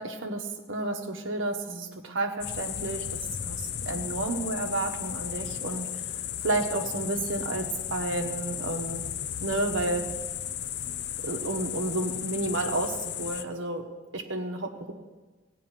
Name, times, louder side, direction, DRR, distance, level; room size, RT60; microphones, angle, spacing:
voice 1, 0.0-9.0 9.4-10.0 11.2-13.8 14.1-14.9, right 2 dB, 70° right, 3 dB, 1.3 m, -31 dB
sound 1, 2.4-13.4, left 10 dB, 55° left, 0.5 m, -35 dB
15.5 x 5.3 x 9.1 m, 1.3 s
head